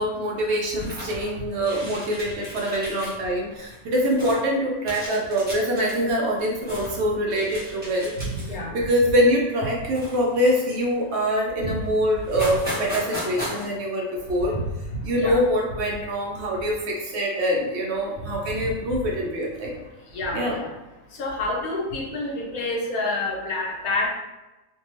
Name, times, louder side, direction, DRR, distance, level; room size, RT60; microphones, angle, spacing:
voice 1, 0.0-8.1 8.7-14.6 15.0-19.7 20.3-20.6, equal, 75° right, -2 dB, 0.6 m, -24 dB
sound 1, 0.7-1.3 1.6-3.1 3.5-4.4 4.8-5.9 6.4-7.0 7.3-8.6 9.0-9.2 9.9-10.8 11.4-11.5 11.8-11.9 12.2-13.7, equal, 10° right, 0.7 m, -36 dB
voice 2, 8.2-8.9 11.6-11.8 12.3-12.4 14.5-14.7 15.2-15.4 18.6-18.7 20.1-20.7 21.2-24.1, left 2 dB, 70° left, -2 dB, 1.1 m, -28 dB
2.7 x 2.2 x 3.0 m, 1.0 s
omnidirectional pair, 1.6 m